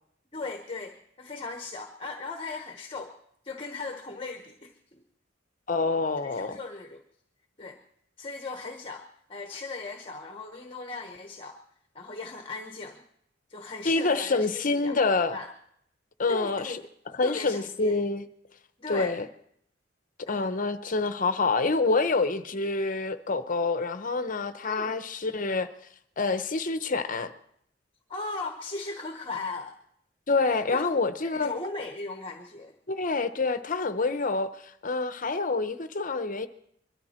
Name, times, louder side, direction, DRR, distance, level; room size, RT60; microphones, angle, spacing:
voice 1, 0.3-3.2 3.4-5.0 6.2-7.0 7.6-7.8 8.2-11.6 11.9-13.0 13.5-15.5 16.3-16.8 17.2-18.0 18.8-19.2 20.3-20.4 24.6-25.0 28.1-29.7 30.7-31.0 31.3-32.7, left 3 dB, 30° left, 1.1 m, -38 dB
voice 2, 5.7-6.6 13.8-15.4 16.2-16.8 17.2-18.2 18.9-19.3 20.3-25.7 26.2-27.3 30.3-31.5 32.9-36.5, left 3 dB, 45° left, 0.8 m, -27 dB
22.0 x 13.0 x 4.4 m
head